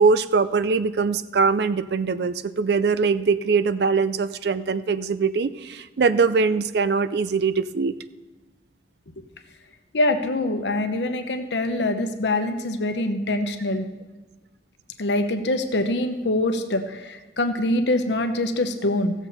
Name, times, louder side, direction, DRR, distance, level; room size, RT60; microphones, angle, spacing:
voice 1, 0.0-8.0, right 4 dB, 65° right, 14 dB, 0.4 m, -22 dB
voice 2, 9.9-13.9 15.0-19.1, left 1 dB, 75° left, 7 dB, 0.9 m, -24 dB
16.5 x 7.1 x 4.2 m, 1.2 s
head